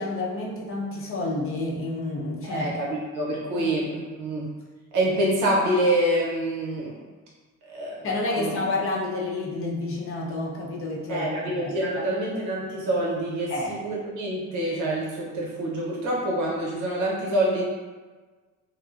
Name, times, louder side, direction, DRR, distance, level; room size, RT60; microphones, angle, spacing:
voice 1, 0.0-2.8 3.5-3.7 8.0-12.1 13.5-13.7, left 2 dB, 45° left, -2 dB, 0.6 m, -30 dB
voice 2, 2.4-4.5 4.9-7.0 7.7-8.1 8.4-8.5 11.1-17.6, right 1 dB, 90° right, -4 dB, 0.8 m, -26 dB
2.5 x 2.0 x 2.4 m, 1.4 s
cardioid pair, 90°, 30 cm